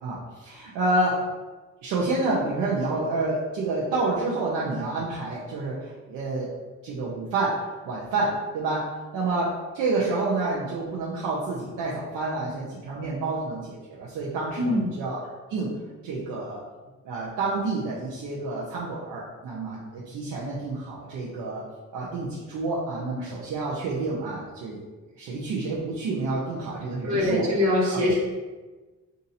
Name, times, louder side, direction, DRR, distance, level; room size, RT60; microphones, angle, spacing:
voice 1, 0.0-1.2 1.8-6.5 6.8-7.6 7.8-8.9 9.1-15.2 15.5-15.7 16.0-16.6 17.0-21.6 21.9-24.8 25.2-27.5 27.8-28.0, right 3 dB, 85° right, -6 dB, 0.7 m, -28 dB
voice 2, 27.0-28.2, left 1 dB, 70° right, -4 dB, 1.2 m, -23 dB
2.7 x 2.6 x 4.0 m, 1.3 s
cardioid pair, 90°, 30 cm